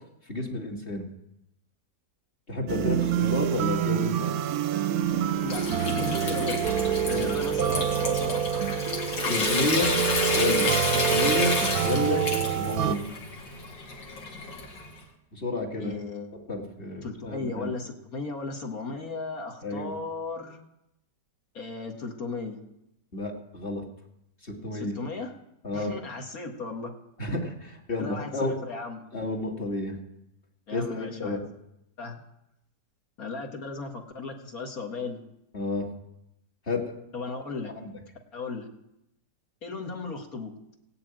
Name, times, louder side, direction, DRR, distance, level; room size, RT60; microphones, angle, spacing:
voice 1, 0.3-1.1 2.5-4.3 7.1-7.3 9.3-9.9 10.3-11.5 11.8-12.2 12.6-13.0 15.3-15.9 16.5-17.7 19.6-19.9 23.1-23.8 24.4-25.0 25.6-25.9 27.2-28.5 29.1-29.9 30.7-31.4 35.5-35.9 36.7-36.8 37.8-37.9, left 2 dB, 30° left, 0 dB, 2.4 m, -30 dB
sound 1, 2.7-13.0, right 9 dB, 65° right, 1.0 m, -26 dB
Water tap faucet / Sink (filling or washing) / Trickle dribble, 5.0-15.0, left 3 dB, 85° left, 2.7 m, -30 dB
voice 2, 5.4-8.4 15.8-16.3 17.0-20.6 21.5-22.6 24.7-25.4 25.7-26.9 27.3-27.4 28.0-29.0 30.7-31.4 32.0-32.2 33.2-35.2 37.1-37.7 38.3-38.7 39.6-40.7, left 4 dB, 55° left, 2 dB, 2.1 m, -36 dB
17.5 x 6.9 x 9.0 m, 0.84 s
omnidirectional pair, 2.0 m